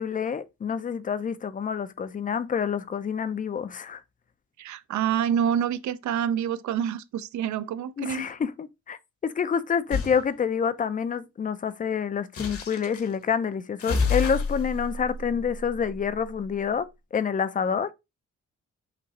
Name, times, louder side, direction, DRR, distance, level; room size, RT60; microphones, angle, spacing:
voice 1, 0.0-4.0 8.0-9.0 9.2-17.9, left 7 dB, 30° left, 0.4 m, -28 dB
voice 2, 4.6-8.3, right 9 dB, 70° right, 0.5 m, -27 dB
sound 1, 9.9-10.2 12.3-13.1 13.8-16.4, left 4 dB, 50° left, 1.0 m, -29 dB
5.9 x 3.0 x 2.8 m
cardioid pair, 140°, 30 cm